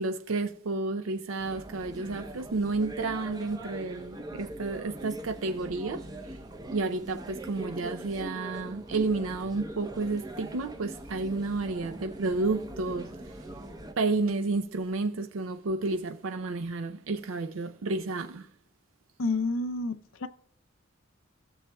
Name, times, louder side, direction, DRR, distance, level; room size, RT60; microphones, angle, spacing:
voice 1, 0.0-6.4 6.7-13.4 14.0-18.5, right 3 dB, 70° right, 0.5 m, -31 dB
sound 1, 1.4-13.9, right 1 dB, 20° right, 0.6 m, -42 dB
voice 2, 19.2-20.3, left 3 dB, 70° left, 0.6 m, -29 dB
16.0 x 7.0 x 2.2 m
head